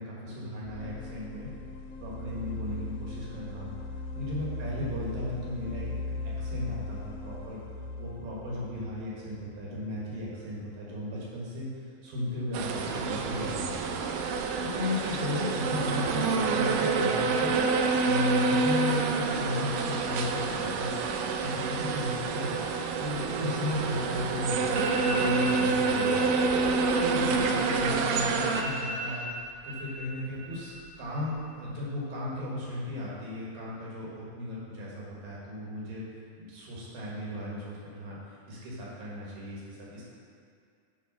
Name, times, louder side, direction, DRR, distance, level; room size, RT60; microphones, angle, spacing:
voice 1, 0.0-1.5 2.0-3.7 4.2-6.0 6.2-7.6 8.0-13.9 14.7-17.6 18.0-22.6 22.9-26.6 27.1-29.3 29.6-30.7 31.0-36.0 36.4-38.2 38.5-40.1, left 1 dB, 65° right, -6 dB, 2.9 m, -35 dB
sound 1, 0.6-10.4, left 3 dB, 80° left, 2.1 m, -39 dB
sound 2, 12.5-28.6, right 4 dB, 85° right, 1.9 m, -27 dB
sound 3, 24.2-24.3 24.7-25.5 25.9-26.2 26.5-28.0 28.2-28.3 28.5-30.0 30.3-30.9 31.2-31.7, right 1 dB, 35° right, 1.1 m, -38 dB
9.5 x 3.3 x 5.3 m, 2.4 s
omnidirectional pair, 4.4 m